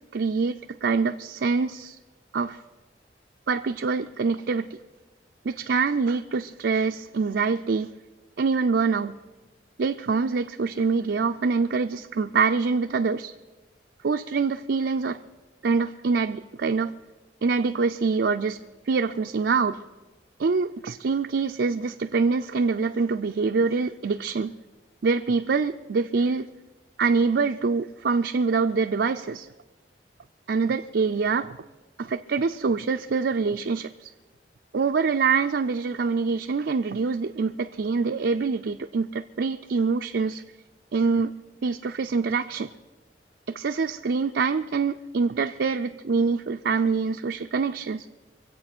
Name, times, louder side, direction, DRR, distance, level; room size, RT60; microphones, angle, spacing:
voice 1, 0.1-2.0 2.3-2.6 3.5-4.8 5.4-7.9 8.4-9.2 9.8-13.3 14.0-15.2 15.6-16.9 17.4-18.6 18.9-19.8 20.4-24.5 25.0-26.5 27.0-29.5 30.5-31.6 32.0-34.1 34.7-40.4 40.9-41.3 41.6-42.7 43.5-48.0, right 4 dB, 70° right, 0.4 m, -25 dB
24.5 x 8.1 x 6.1 m
head